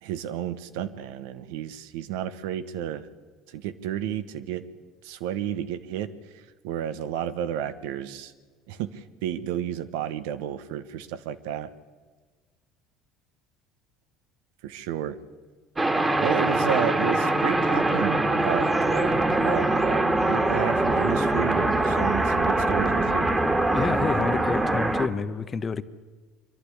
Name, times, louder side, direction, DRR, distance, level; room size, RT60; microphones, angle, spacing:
voice 1, 0.0-3.1 3.5-4.6 5.0-8.3 8.7-11.7 14.6-15.2 16.2-23.3, right 10 dB, 80° right, 12 dB, 1.2 m, -32 dB
sound 1, 15.8-25.1, right 2 dB, 20° right, 1.9 m, -23 dB
voice 2, 23.7-25.8, left 5 dB, 35° left, 12 dB, 1.1 m, -28 dB
24.0 x 12.0 x 10.0 m, 1.4 s
hypercardioid pair, 75°, 0 cm